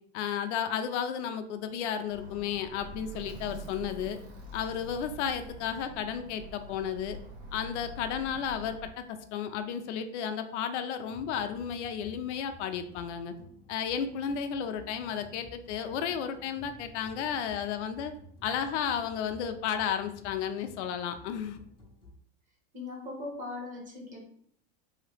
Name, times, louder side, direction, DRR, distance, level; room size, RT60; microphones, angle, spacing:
voice 1, 0.1-4.2 4.5-7.2 7.5-13.3 13.7-18.1 18.4-21.6, left 8 dB, 85° left, 8 dB, 0.5 m, -33 dB
Alarm, 2.1-8.9, right 2 dB, 90° right, 1.4 m, -45 dB
sound 1, 11.1-22.1, equal, 15° left, 0.7 m, -53 dB
voice 2, 22.7-24.3, left 2 dB, 25° right, -2 dB, 1.0 m, -39 dB
2.9 x 2.8 x 3.2 m, 0.63 s
supercardioid pair, 150°, 34 cm